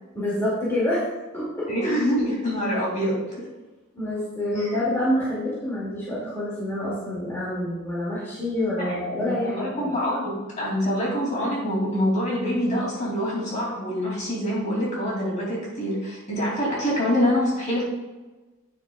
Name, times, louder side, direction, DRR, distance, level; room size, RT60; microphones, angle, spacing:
voice 1, 0.1-1.7 3.9-9.9, left 1 dB, 10° left, -9 dB, 2.3 m, -27 dB
voice 2, 1.7-3.2 4.5-4.7 8.8-17.8, equal, 30° left, -4 dB, 2.7 m, -25 dB
9.1 x 8.5 x 2.4 m, 1.2 s
head